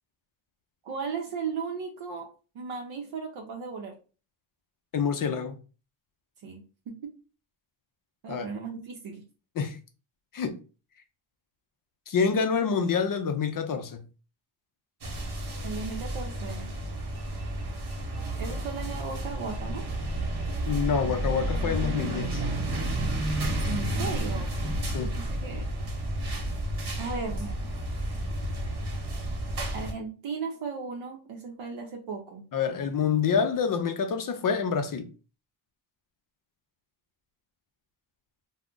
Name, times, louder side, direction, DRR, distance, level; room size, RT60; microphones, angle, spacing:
voice 1, 0.8-2.3 2.5-4.0 6.4-7.2 8.2-9.3 15.6-16.7 18.4-19.9 23.7-24.5 25.0-25.7 27.0-27.6 29.7-32.4, right 5 dB, 70° right, 0.7 m, -36 dB
voice 2, 4.9-5.6 8.3-8.5 9.6-9.8 10.3-10.6 12.1-14.0 20.7-22.4 24.9-25.1 32.5-35.1, left 6 dB, 45° left, 0.4 m, -27 dB
sound 1, 15.0-29.9, right 1 dB, 50° right, 1.0 m, -31 dB
2.4 x 2.1 x 3.6 m
cardioid pair, 100°, 49 cm